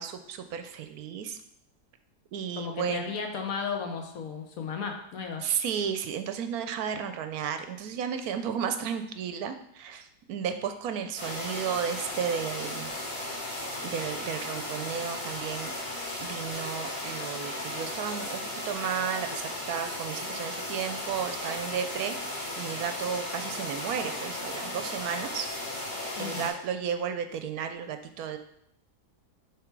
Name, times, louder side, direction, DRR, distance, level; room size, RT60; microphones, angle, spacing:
voice 1, 0.0-1.4 2.3-3.1 5.4-12.9 13.8-15.7 16.2-25.5 26.2-28.4, right 8 dB, 75° right, 8 dB, 1.0 m, -33 dB
voice 2, 2.5-5.4 26.1-26.5, left 5 dB, 65° left, 3 dB, 1.3 m, -34 dB
sound 1, 11.2-26.5, left 1 dB, 15° left, 2.0 m, -36 dB
7.4 x 3.5 x 4.6 m, 0.76 s
omnidirectional pair, 1.7 m